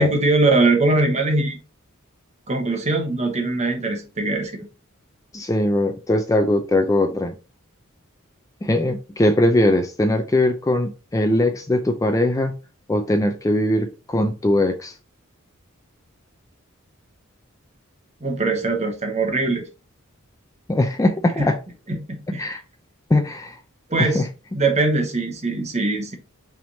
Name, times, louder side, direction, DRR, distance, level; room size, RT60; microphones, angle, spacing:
voice 1, 0.0-1.6 2.5-4.5 18.2-19.7 21.4-21.5 21.9-22.5 23.9-24.2 24.5-26.1, right 2 dB, 30° right, 1.1 m, -21 dB
voice 2, 5.3-7.3 8.6-12.6 12.9-15.0 20.7-21.6 22.4-22.6 23.1-23.6 24.0-24.3, left 1 dB, 15° left, 0.4 m, -20 dB
5.6 x 3.5 x 2.7 m
head